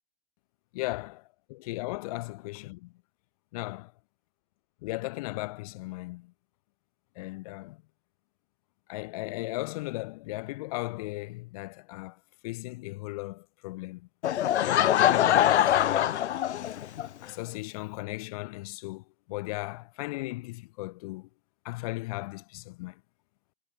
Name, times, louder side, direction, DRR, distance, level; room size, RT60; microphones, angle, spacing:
voice 1, 0.7-2.9 3.5-3.9 4.8-6.3 7.1-7.8 8.9-14.1 14.6-16.2 17.2-21.3 21.6-23.0, left 21 dB, 35° left, 1.8 m, -36 dB
Laughter / Crowd, 14.2-17.1, left 11 dB, 80° left, 1.0 m, -23 dB
hypercardioid pair, 170°, 33 cm